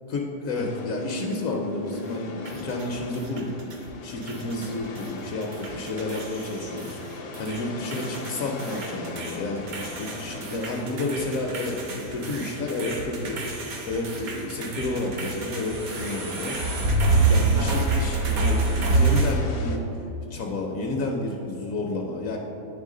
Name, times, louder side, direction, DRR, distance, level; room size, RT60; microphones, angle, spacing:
voice 1, 0.1-3.5 4.0-19.9 20.3-22.4, left 2 dB, 70° left, 1 dB, 0.9 m, -31 dB
sound 1, 0.5-19.8, left 3 dB, 85° left, 1.2 m, -41 dB
Piano, 0.8-6.4, left 2 dB, 55° right, 0.4 m, -41 dB
sound 2, 2.5-3.9 4.2-5.1 5.4-7.6 7.9-19.4, right 3 dB, 75° right, 1.3 m, -27 dB
9.0 x 3.4 x 3.7 m, 2.9 s
omnidirectional pair, 1.6 m